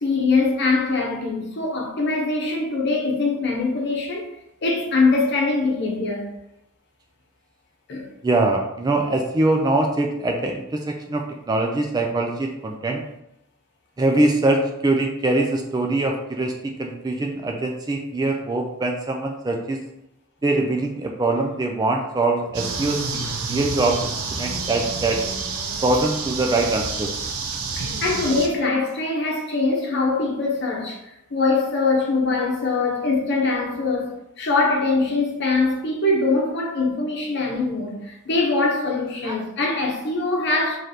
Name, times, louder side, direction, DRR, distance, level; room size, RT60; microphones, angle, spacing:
voice 1, 0.0-4.3 4.6-6.2 7.9-8.1 27.7-31.0 31.3-40.8, left 3 dB, 55° left, 0.9 m, -22 dB
voice 2, 8.2-13.0 14.0-19.8 20.4-25.2 25.8-27.1 39.2-39.3, right 2 dB, 20° right, 0.3 m, -23 dB
sound 1, 22.5-28.5, right 4 dB, 85° right, 0.6 m, -28 dB
3.2 x 2.9 x 3.8 m
head